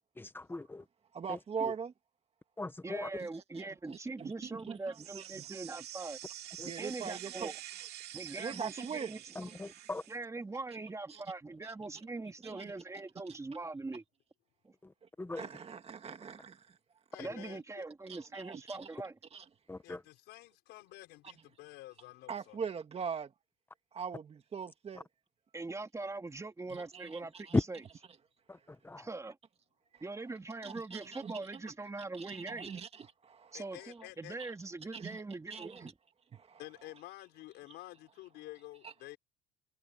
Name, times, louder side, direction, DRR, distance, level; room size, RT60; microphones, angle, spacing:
voice 1, 0.2-0.8 2.6-3.1 6.6-6.7 9.4-10.0 15.2-15.4 19.7-20.0 28.8-29.0, left 2 dB, 10° left, 1.4 m, -41 dB
voice 2, 1.1-1.9 3.2-5.5 6.6-7.5 8.3-9.2 9.5-9.6 11.1-11.2 11.6-11.7 12.4-12.7 15.3-16.8 18.1-18.9 19.3-19.4 22.3-23.3 23.9-25.1 26.7-27.6 29.9-30.0 30.6-31.6 32.1-33.6 34.9-35.2 35.5-35.9 36.3-36.6 38.8-38.9, right 6 dB, 35° right, 2.1 m, -42 dB
voice 3, 2.8-6.2 6.8-7.5 8.1-9.2 10.1-14.0 14.6-14.7 17.2-19.2 25.5-27.8 29.0-29.4 30.0-32.7 33.5-35.9, right 3 dB, 20° right, 3.3 m, -42 dB
sound 1, 4.9-10.2, right 12 dB, 70° right, 3.1 m, -47 dB
voice 4, 17.1-17.8 19.8-22.6 33.5-34.4 36.6-39.2, left 17 dB, 90° left, 6.0 m, -50 dB
cardioid pair, 110°, 17 cm